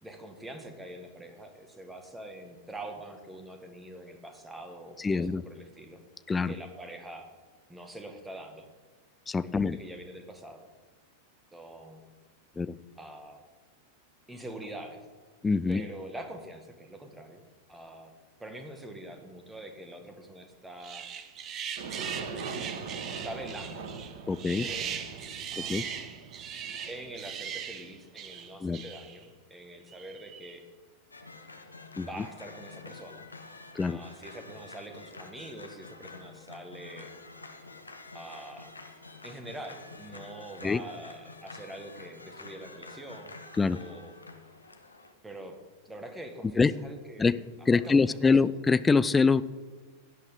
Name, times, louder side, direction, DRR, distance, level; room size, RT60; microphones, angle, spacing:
voice 1, 0.0-6.0 6.4-7.3 7.7-8.7 9.4-10.6 11.5-12.0 13.0-13.4 14.3-15.0 15.7-17.4 17.7-18.1 18.4-21.1 23.1-23.9 24.6-25.0 25.5-26.0 26.9-30.6 32.0-33.2 33.9-37.1 38.1-38.7 39.2-43.4 43.7-44.2 45.2-45.6 45.8-48.5, right 1 dB, 10° right, 5 dB, 1.7 m, -44 dB
voice 2, 5.0-5.4 6.3-6.5 9.3-9.8 12.6-12.8 15.4-15.9 24.3-24.7 25.6-25.8 28.6-28.8 32.0-32.1 33.8-34.0 40.6-40.8 43.6-43.8 46.6-46.7 47.2-47.4 47.7-49.4, left 4 dB, 15° left, 16 dB, 0.4 m, -24 dB
sound 1, 20.8-29.3 29.9-30.6, right 8 dB, 30° right, 1.0 m, -39 dB
Aircraft, 21.8-28.5, right 4 dB, 55° right, 1.5 m, -42 dB
sound 2, 31.1-45.1, left 3 dB, 80° left, 1.0 m, -48 dB
16.5 x 10.5 x 3.8 m, 1.4 s
figure-of-eight pair, 90°, 0 cm